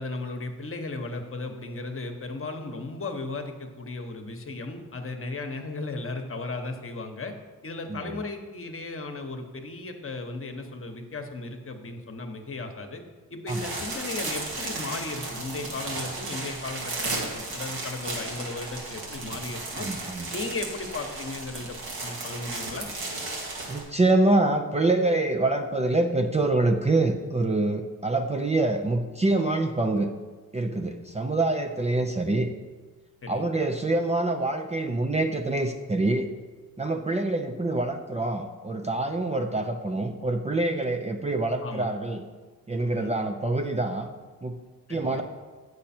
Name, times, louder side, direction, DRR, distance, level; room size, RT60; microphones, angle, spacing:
voice 1, 0.0-7.3 7.6-13.0 13.3-19.9 20.3-22.9 33.2-33.5 41.6-41.9 43.0-43.1 44.9-45.2, left 3 dB, 35° left, 5 dB, 1.1 m, -36 dB
sound 1, 13.5-23.8, right 2 dB, 85° right, 1.9 m, -34 dB
voice 2, 19.8-20.3 23.7-30.1 30.5-32.5 33.3-36.3 36.8-42.2 42.7-44.1 44.4-44.6 44.9-45.2, right 2 dB, 20° right, 4 dB, 0.5 m, -25 dB
8.0 x 6.5 x 4.4 m, 1.3 s
cardioid pair, 70°, 36 cm